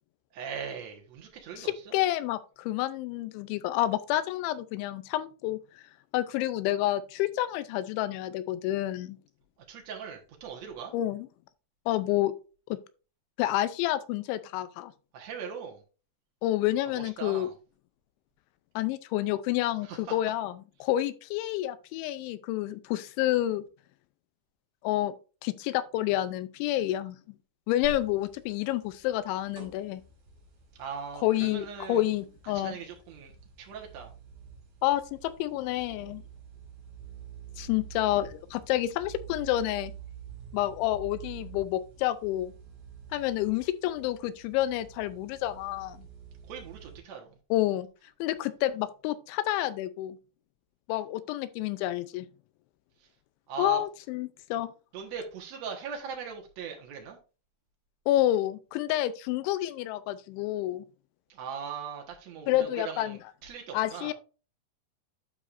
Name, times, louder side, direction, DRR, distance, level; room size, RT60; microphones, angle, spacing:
voice 1, 0.3-2.0 9.7-10.9 15.1-15.8 16.9-17.5 19.8-20.1 30.8-32.0 32.4-34.1 46.5-47.4 53.5-53.8 54.9-57.2 61.3-64.1, right 6 dB, 80° right, 1.5 m, -40 dB
voice 2, 1.6-5.6 6.1-9.2 10.9-11.3 11.9-12.3 12.7-12.8 13.4-14.9 16.4-17.5 18.8-23.6 24.8-25.1 25.4-27.2 27.7-30.0 31.2-32.8 34.8-36.2 37.6-39.9 40.5-42.5 43.1-46.1 47.5-47.9 48.2-50.2 50.9-52.3 53.6-54.7 58.1-60.8 62.5-63.2 63.7-64.1, left 14 dB, 85° left, 3.0 m, -29 dB
sound 1, 27.8-47.0, right 7 dB, 60° right, 4.7 m, -48 dB
12.0 x 4.9 x 2.5 m
omnidirectional pair, 5.3 m